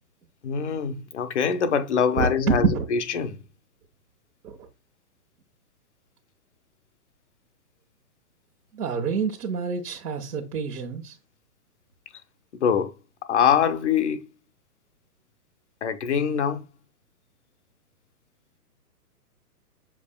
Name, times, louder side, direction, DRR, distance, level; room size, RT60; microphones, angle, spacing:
voice 1, 0.4-3.4 12.6-12.9 13.3-14.2 15.8-16.6, left 7 dB, 50° left, 0.6 m, -24 dB
voice 2, 2.2-2.9 4.4-4.6 8.7-11.1, right 5 dB, 75° right, 1.1 m, -27 dB
7.0 x 2.8 x 2.2 m
hypercardioid pair, 165°, 46 cm